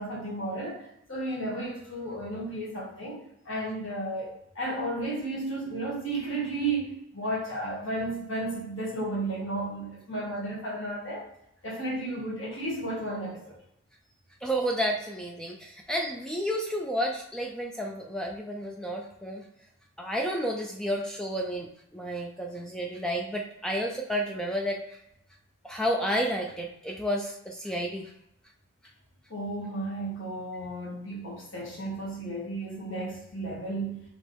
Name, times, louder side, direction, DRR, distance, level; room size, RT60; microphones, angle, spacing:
voice 1, 0.0-11.2 11.6-13.5 29.3-34.0, right 2 dB, 60° left, -5 dB, 1.7 m, -33 dB
voice 2, 14.4-19.4 20.0-21.7 21.9-24.8 25.6-28.1, equal, 5° left, 1 dB, 0.3 m, -31 dB
5.2 x 3.1 x 3.3 m, 0.79 s
head